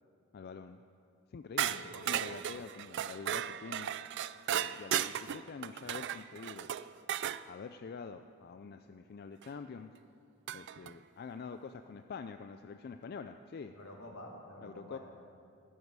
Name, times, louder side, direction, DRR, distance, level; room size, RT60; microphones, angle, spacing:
voice 1, 0.3-0.8 1.3-1.8 2.0-3.9 4.5-6.7 7.5-9.9 10.5-13.7 14.6-15.0, left 5 dB, 50° left, 8 dB, 0.4 m, -46 dB
voice 2, 1.6-2.1 13.7-15.0, left 1 dB, 80° left, 0 dB, 2.2 m, -49 dB
sound 1, 1.6-7.4 9.4-9.5 10.5-10.9, right 10 dB, 55° right, 0.3 m, -36 dB
14.5 x 12.0 x 4.8 m, 2.5 s
head